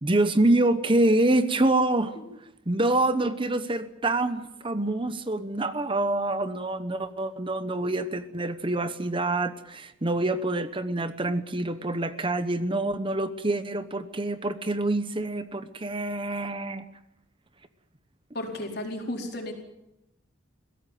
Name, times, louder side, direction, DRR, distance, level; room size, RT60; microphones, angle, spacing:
voice 1, 0.0-16.9, right 2 dB, 25° right, 11 dB, 1.0 m, -26 dB
voice 2, 18.3-19.5, left 1 dB, 55° left, 2 dB, 4.5 m, -33 dB
22.0 x 16.5 x 9.2 m, 0.89 s
head